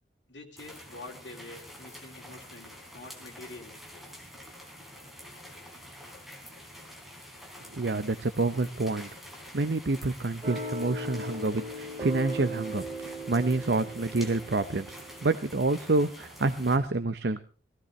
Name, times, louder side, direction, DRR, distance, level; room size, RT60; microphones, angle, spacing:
voice 1, 0.3-3.8, left 2 dB, 75° left, -2 dB, 2.9 m, -46 dB
sound 1, 0.6-16.8, equal, ahead, 3.5 m, -47 dB
voice 2, 7.7-9.1 9.5-17.4, right 3 dB, 65° right, 10 dB, 0.8 m, -28 dB
sound 2, 10.4-15.9, right 1 dB, 25° right, 2.9 m, -39 dB
18.0 x 16.5 x 3.2 m, 0.36 s
head